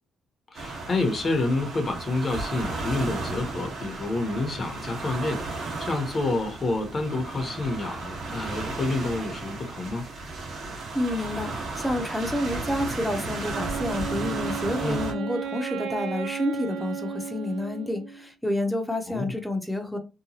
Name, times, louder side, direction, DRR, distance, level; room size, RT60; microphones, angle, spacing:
voice 1, 0.5-10.0 14.8-15.0 19.1-19.3, left 2 dB, 40° left, 0.8 m, -28 dB
sound 1, 0.5-15.1, right 3 dB, 60° right, 1.1 m, -34 dB
voice 2, 10.9-20.0, left 1 dB, 5° left, 0.7 m, -29 dB
Wind instrument woodwind instrument, 13.5-18.3, right 7 dB, 85° right, 0.4 m, -34 dB
2.8 x 2.2 x 2.7 m
cardioid pair, 90°, 0 cm